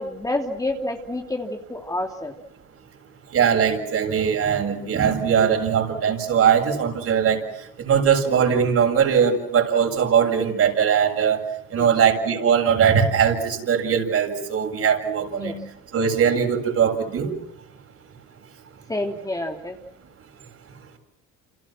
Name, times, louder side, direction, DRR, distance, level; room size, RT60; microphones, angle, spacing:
voice 1, 0.0-2.3 11.8-11.9 15.4-15.6 18.9-19.8, left 1 dB, 10° left, 3 dB, 2.9 m, -28 dB
voice 2, 3.3-7.4 7.8-11.4 11.7-15.6 15.9-17.3, right 7 dB, 50° right, 3 dB, 7.4 m, -20 dB
30.0 x 28.0 x 6.2 m, 0.73 s
cardioid pair, 110°, 31 cm